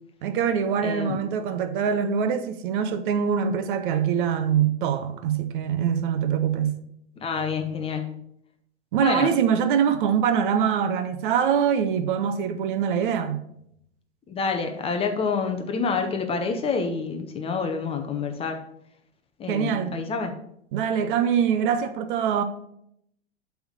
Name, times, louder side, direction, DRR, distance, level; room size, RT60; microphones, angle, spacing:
voice 1, 0.2-6.7 8.9-13.4 19.5-20.0 20.7-22.4, right 7 dB, 45° right, 0.8 m, -24 dB
voice 2, 0.8-1.2 7.2-8.1 9.0-9.3 14.3-18.6 19.4-20.3, left 5 dB, 15° left, 0.7 m, -27 dB
7.9 x 3.6 x 6.5 m
figure-of-eight pair, 105°, 35 cm